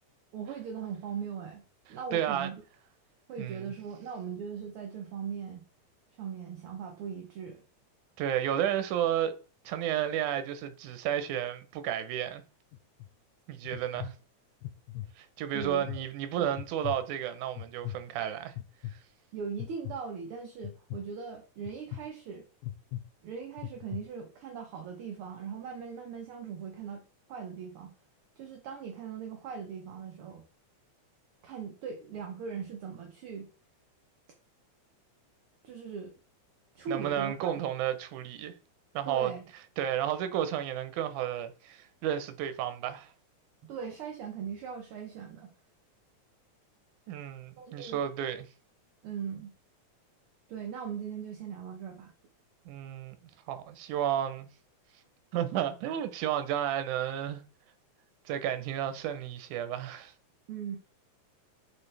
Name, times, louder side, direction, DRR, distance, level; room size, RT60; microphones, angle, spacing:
voice 1, 0.3-1.6 1.9-2.5 3.3-5.6 6.1-7.6 15.5-16.0 16.4-16.5 19.3-22.4 23.2-27.0 27.3-27.9 28.4-30.4 31.4-33.5 35.6-36.1 36.7-37.6 39.0-39.5 43.6-45.5 47.6-48.0 49.0-49.5 50.5-52.1 60.5-60.8, right 6 dB, 65° right, 1.4 m, -39 dB
voice 2, 2.1-2.5 3.4-3.7 8.2-9.3 9.7-12.4 13.5-14.1 15.2-18.5 18.9-19.0 36.9-38.5 38.9-39.3 39.8-43.1 47.1-48.5 52.7-53.2 53.5-54.5 55.3-57.4 58.3-60.1, right 10 dB, 85° right, 2.2 m, -32 dB
sound 1, 12.7-13.1 13.6-14.1 14.6-15.1 15.6-16.0 16.6-17.0 17.6-18.0 18.6-18.9 19.6-20.0 20.6-21.0 21.7-22.0 22.6-23.0 23.6-24.0, left 15 dB, 85° left, 2.0 m, -38 dB
7.2 x 4.5 x 3.3 m
omnidirectional pair, 3.4 m